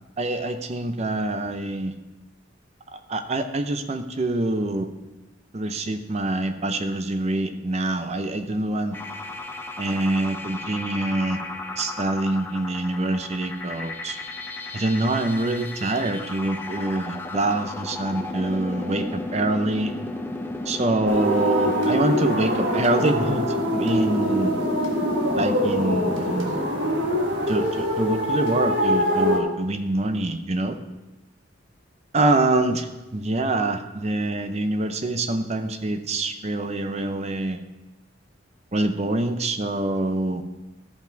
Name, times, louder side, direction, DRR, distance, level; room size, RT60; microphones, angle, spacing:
voice 1, 0.2-1.9 2.9-4.9 5.5-9.0 9.8-11.4 11.8-14.2 14.7-19.9 20.7-23.4 23.7-24.6 25.4-26.6 27.5-30.8 32.1-37.6 38.7-40.4, right 2 dB, 35° right, 8 dB, 0.6 m, -25 dB
sound 1, 8.9-28.4, left 2 dB, 10° left, 0.6 m, -34 dB
sound 2, 21.0-29.4, equal, 70° right, 1.5 m, -24 dB
13.5 x 5.9 x 4.5 m, 1.0 s
head